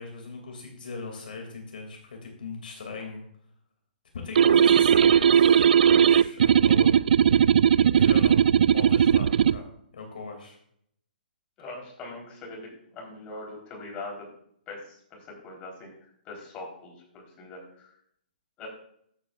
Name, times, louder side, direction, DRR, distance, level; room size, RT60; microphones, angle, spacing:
voice 1, 0.0-3.2 4.1-6.9 8.0-8.4 8.7-10.6, left 4 dB, 65° left, 2 dB, 2.6 m, -39 dB
sound 1, 4.4-9.6, right 8 dB, 65° right, 0.3 m, -18 dB
voice 2, 11.6-14.3 14.7-15.9 16.3-17.9 18.6-18.7, left 2 dB, 25° left, -1 dB, 3.9 m, -42 dB
14.0 x 9.0 x 2.5 m, 0.68 s
hypercardioid pair, 130°, 5 cm